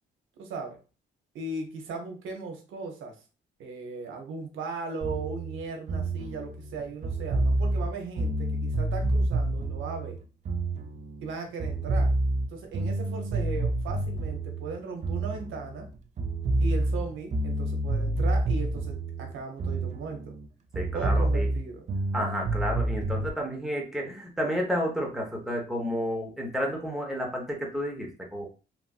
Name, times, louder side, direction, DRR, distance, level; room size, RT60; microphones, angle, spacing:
voice 1, 0.4-0.8 1.3-3.2 3.6-10.2 11.2-12.1 12.5-15.9 16.6-20.4 20.9-21.9, right 4 dB, 80° right, 4 dB, 0.8 m, -37 dB
sound 1, 5.0-11.3 11.6-15.9 16.2-20.5 20.7-23.3, right 2 dB, 35° right, 0.4 m, -28 dB
voice 2, 20.7-21.5 22.1-28.5, equal, ahead, -1 dB, 0.9 m, -31 dB
3.1 x 2.5 x 2.3 m, 0.33 s
cardioid pair, 90°, 20 cm